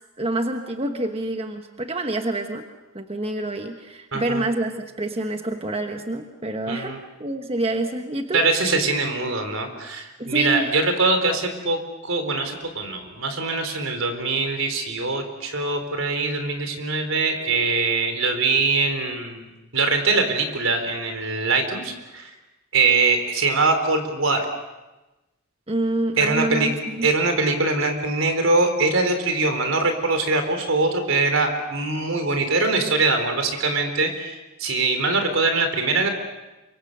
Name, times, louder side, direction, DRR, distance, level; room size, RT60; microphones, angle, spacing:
voice 1, 0.2-2.6 2.9-6.9 7.2-8.4 10.2-10.7 25.7-27.1, right 2 dB, 30° right, 5 dB, 1.2 m, -27 dB
voice 2, 4.1-4.4 6.7-7.0 8.3-19.4 19.7-22.3 22.7-24.5 26.2-26.7 27.0-36.1, right 3 dB, 75° right, 6 dB, 4.0 m, -22 dB
28.5 x 24.5 x 6.8 m, 1.1 s
head